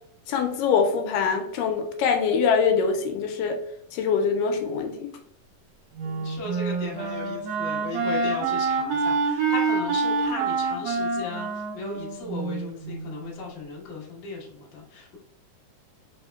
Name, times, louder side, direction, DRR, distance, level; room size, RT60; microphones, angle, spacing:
voice 1, 0.3-3.6 3.9-5.2, left 6 dB, 80° left, 5 dB, 2.0 m, -24 dB
voice 2, 6.0-15.2, left 3 dB, 65° left, -4 dB, 1.1 m, -36 dB
Wind instrument woodwind instrument, 6.0-13.1, right 4 dB, 70° right, 2.6 m, -27 dB
4.9 x 3.5 x 2.2 m, 0.72 s
omnidirectional pair, 4.0 m